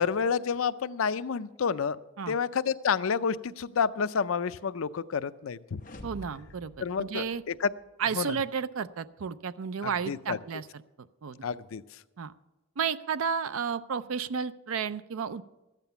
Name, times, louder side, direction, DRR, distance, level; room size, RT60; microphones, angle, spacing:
voice 1, 0.0-2.0 2.3-5.8 6.8-7.7 8.1-8.3 9.8-10.4 11.4-11.8, left 6 dB, 80° left, 14 dB, 0.5 m, -29 dB
sound 1, 5.8-7.9, left 1 dB, 40° left, 0.9 m, -48 dB
voice 2, 6.0-6.7 7.0-7.4 8.0-10.7 11.2-11.5 12.2-12.3 12.8-15.4, right 6 dB, 85° right, 14 dB, 0.5 m, -32 dB
13.0 x 9.1 x 6.8 m, 1.0 s
head